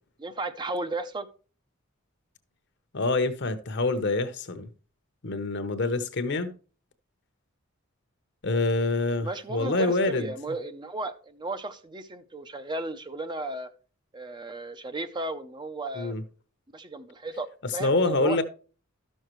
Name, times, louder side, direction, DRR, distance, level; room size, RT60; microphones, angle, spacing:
voice 1, 0.2-1.3 9.2-13.7 14.1-16.2 16.7-18.4, right 2 dB, 20° right, 0.5 m, -35 dB
voice 2, 2.9-4.7 5.2-6.5 8.4-10.3 16.0-16.2 17.8-18.4, left 2 dB, 55° left, 0.9 m, -26 dB
13.0 x 6.4 x 3.1 m
head